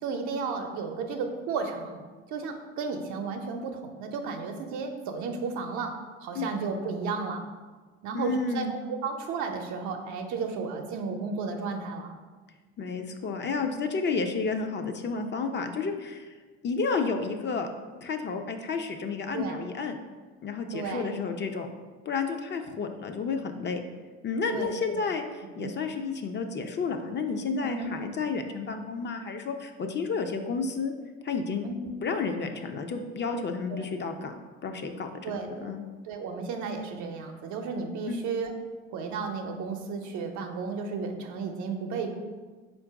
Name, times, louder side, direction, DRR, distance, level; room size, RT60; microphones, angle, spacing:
voice 1, 0.0-2.0 2.3-5.9 6.2-7.4 8.0-12.1 19.3-19.6 20.7-21.1 24.5-25.1 25.6-25.7 27.6-27.9 31.6-31.9 33.7-33.9 35.2-35.7 36.0-38.5 38.9-42.1, right 4 dB, 70° right, 4 dB, 0.7 m, -33 dB
voice 2, 8.1-8.7 12.8-16.3 16.6-17.7 18.0-20.0 20.4-21.7 22.1-23.8 24.2-25.2 25.6-30.9 31.2-31.7 32.0-34.3 34.6-35.3 35.6-35.8 38.1-38.3, left 4 dB, 35° left, 5 dB, 0.5 m, -31 dB
4.3 x 2.6 x 4.7 m, 1.4 s
hypercardioid pair, 65°, 31 cm